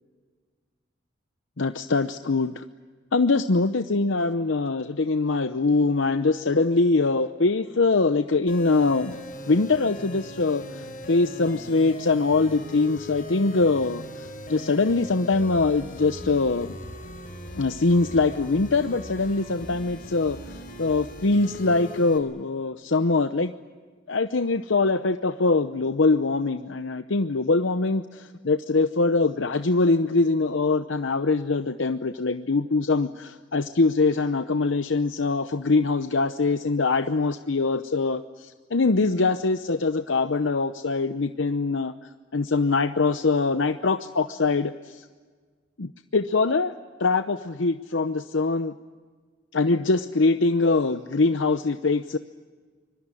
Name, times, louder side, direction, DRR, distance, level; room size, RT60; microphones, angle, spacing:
voice 1, 1.6-2.7 3.1-9.2 9.5-16.7 17.6-23.5 24.1-45.0 45.8-46.7 47.0-48.7 49.5-52.2, left 3 dB, 70° left, 9 dB, 0.8 m, -23 dB
sound 1, 8.5-22.2, left 1 dB, 45° left, 5.5 m, -39 dB
25.5 x 22.0 x 9.9 m, 1.5 s
head